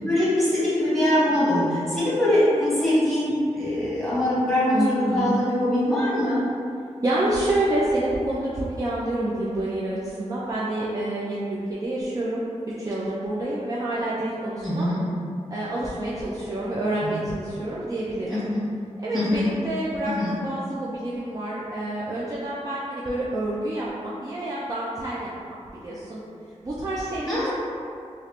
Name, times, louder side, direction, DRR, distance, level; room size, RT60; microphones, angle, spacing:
voice 1, 0.1-6.4 14.6-15.0 17.0-17.1 18.3-18.6 19.1-19.5 20.0-20.3 27.2-27.5, left 1 dB, ahead, -11 dB, 1.3 m, -23 dB
voice 2, 4.7-5.3 7.0-12.4 12.8-14.9 15.5-18.5 19.0-25.3 25.8-26.2 26.6-27.5, right 1 dB, 30° right, -7 dB, 0.4 m, -28 dB
3.1 x 2.4 x 2.8 m, 2.4 s
wide cardioid pair, 115°, 12 cm